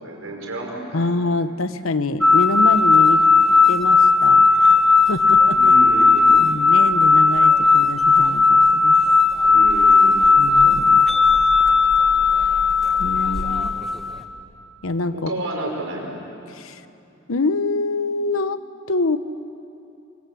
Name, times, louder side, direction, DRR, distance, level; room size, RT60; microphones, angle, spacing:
voice 1, 0.0-1.1 5.6-6.4 9.4-10.2 15.1-16.2, right 1 dB, 80° right, 0 dB, 5.3 m, -31 dB
voice 2, 0.9-3.3 3.7-4.8 5.1-5.6 6.4-8.9 10.4-11.0 13.0-13.7 14.8-15.3 16.5-16.8 17.3-18.6 18.9-19.2, left 2 dB, 85° left, 12 dB, 1.0 m, -25 dB
sound 1, 2.2-14.2, left 4 dB, ahead, 1.3 m, -15 dB
24.0 x 23.5 x 8.5 m, 2.7 s
head